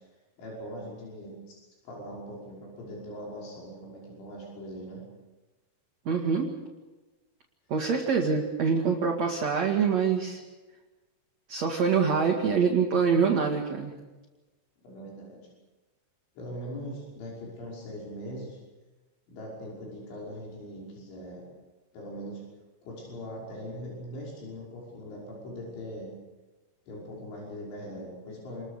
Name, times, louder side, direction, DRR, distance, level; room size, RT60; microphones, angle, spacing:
voice 1, 0.4-1.6 1.8-5.0 14.8-15.5 16.4-18.6 19.3-21.4 21.9-22.4 22.8-26.1 26.9-28.7, equal, 85° left, -3 dB, 8.1 m, -41 dB
voice 2, 6.1-6.5 7.7-10.4 11.5-13.9, right 6 dB, 45° right, 1 dB, 2.6 m, -25 dB
29.0 x 22.0 x 6.7 m, 1.2 s
omnidirectional pair, 5.3 m